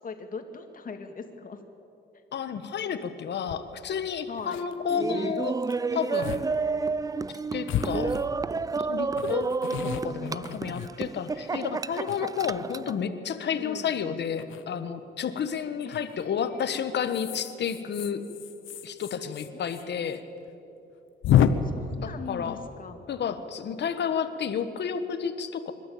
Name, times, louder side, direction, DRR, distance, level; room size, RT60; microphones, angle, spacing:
voice 1, 0.0-1.6 2.1-2.2 4.3-4.7 7.7-8.5 13.5-14.0 15.8-16.8 19.5-20.2 21.6-23.0 23.6-23.9, left 5 dB, 45° left, 6 dB, 2.2 m, -42 dB
voice 2, 2.3-5.6 5.9-6.5 7.5-8.1 8.9-9.5 9.8-18.2 18.8-20.2 21.4-21.7 22.0-22.6 23.1-25.7, left 7 dB, 60° left, 10 dB, 1.5 m, -31 dB
sound 1, 3.5-3.6 4.1-4.2 4.4-4.7 5.6-5.8 6.2-6.4 6.8-6.9 7.7-8.6 9.2-11.4 11.9-12.7 14.4-14.6 15.9-16.3 17.0-19.8 20.1-20.2 20.5-20.6 21.2-21.5, left 11 dB, 80° left, 1.0 m, -29 dB
Laughter, 4.9-13.0, right 4 dB, 20° right, 0.4 m, -30 dB
25.5 x 12.5 x 8.7 m, 2.8 s
cardioid pair, 90°, 20 cm